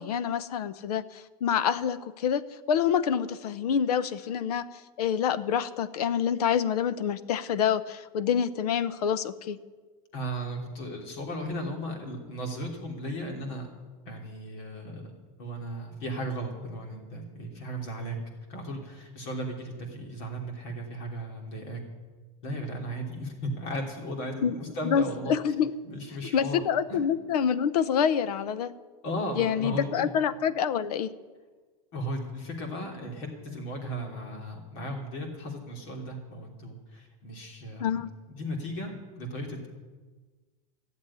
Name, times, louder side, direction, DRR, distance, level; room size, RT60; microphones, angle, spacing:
voice 1, 0.0-2.4 2.7-4.7 5.0-9.6 24.4-24.6 24.8-25.0 25.3-25.7 26.3-28.7 29.4-31.1 37.8-38.1, left 8 dB, 80° left, 15 dB, 0.9 m, -27 dB
voice 2, 10.1-13.7 14.0-18.2 18.5-21.8 22.4-25.3 25.8-26.6 26.9-27.1 29.0-29.9 31.9-38.0 38.4-39.7, equal, 45° left, 2 dB, 3.2 m, -36 dB
14.5 x 7.4 x 9.9 m, 1.4 s
supercardioid pair, 170°, 20 cm